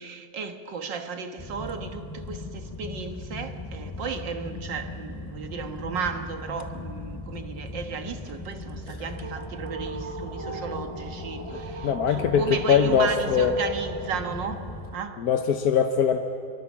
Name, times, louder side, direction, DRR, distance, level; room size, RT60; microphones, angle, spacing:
voice 1, 0.0-15.2, right 5 dB, 90° right, 2.1 m, -34 dB
sound 1, 1.4-15.0, left 2 dB, 15° left, 0.8 m, -38 dB
sound 2, 8.8-14.9, right 3 dB, 15° right, 2.4 m, -39 dB
voice 2, 11.5-13.5 15.2-16.2, left 7 dB, 65° left, 1.4 m, -22 dB
25.5 x 23.5 x 7.4 m
omnidirectional pair, 1.9 m